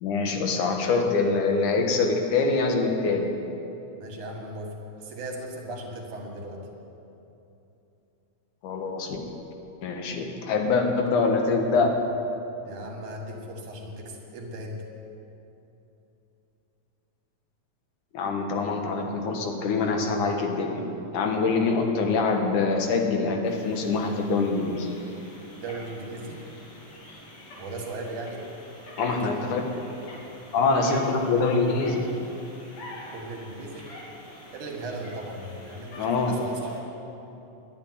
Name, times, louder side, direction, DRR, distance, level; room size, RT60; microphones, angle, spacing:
voice 1, 0.0-3.3 8.6-9.2 9.8-11.9 18.1-20.8 21.1-24.9 29.0-29.6 30.5-32.1 36.0-36.3, left 4 dB, 90° left, 3 dB, 2.9 m, -24 dB
voice 2, 4.0-6.7 12.6-14.8 25.6-26.4 27.5-28.4 29.2-29.3 33.1-33.9 34.5-36.9, right 1 dB, 80° right, 1 dB, 3.3 m, -37 dB
sound 1, 23.4-36.8, left 1 dB, 50° left, 3.4 m, -45 dB
11.5 x 10.5 x 9.4 m, 2.9 s
omnidirectional pair, 3.5 m